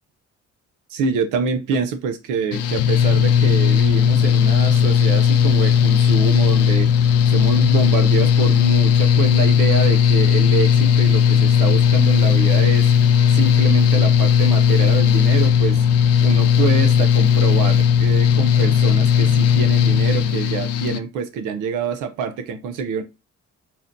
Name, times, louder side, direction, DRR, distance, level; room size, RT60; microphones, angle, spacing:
voice 1, 0.9-6.9 7.3-12.9 13.3-15.8 16.2-23.0, right 6 dB, 85° right, 0.6 m, -25 dB
Mechanical fan, 2.5-21.0, left 7 dB, 55° left, 0.4 m, -16 dB
4.2 x 2.1 x 2.6 m
cardioid pair, 90°, 30 cm